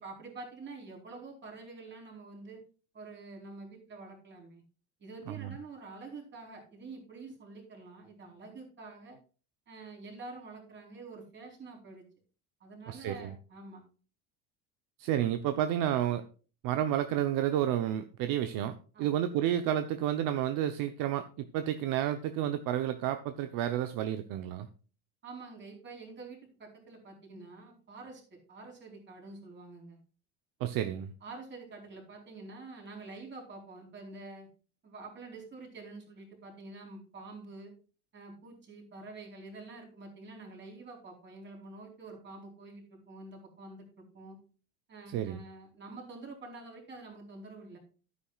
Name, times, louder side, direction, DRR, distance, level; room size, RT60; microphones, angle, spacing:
voice 1, 0.0-2.6 2.9-4.6 5.0-9.2 9.7-12.0 12.6-13.8 15.2-15.3 18.9-19.2 25.2-30.0 31.2-34.5 34.8-37.7 38.1-44.4 44.9-47.8, right 3 dB, 25° right, 4.2 m, -47 dB
voice 2, 12.9-13.3 15.0-16.2 16.6-24.7 30.6-31.1 45.1-45.4, right 11 dB, 55° right, 0.9 m, -31 dB
12.0 x 9.8 x 2.4 m
cardioid pair, 150°, 40 cm